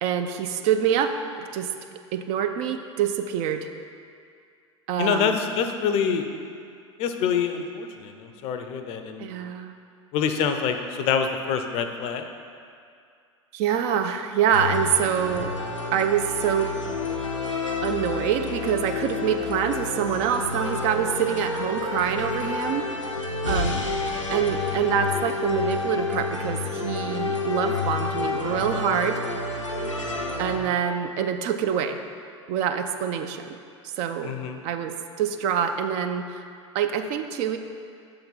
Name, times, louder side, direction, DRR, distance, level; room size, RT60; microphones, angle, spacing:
voice 1, 0.0-1.1 1.5-1.7 2.1-3.7 4.9-5.4 9.2-9.8 13.5-15.5 15.9-16.7 17.8-23.2 23.5-23.8 24.3-29.2 30.4-32.0 32.5-33.6 33.8-34.3 34.6-36.4 36.7-37.6, right 8 dB, 40° right, 7 dB, 0.4 m, -25 dB
voice 2, 5.0-6.3 7.0-9.3 10.1-12.3 34.2-34.6, left 7 dB, 40° left, 7 dB, 0.5 m, -26 dB
sound 1, 14.5-30.6, left 3 dB, 85° left, 0.6 m, -29 dB
6.9 x 3.8 x 5.6 m, 2.3 s
figure-of-eight pair, 80°, 16 cm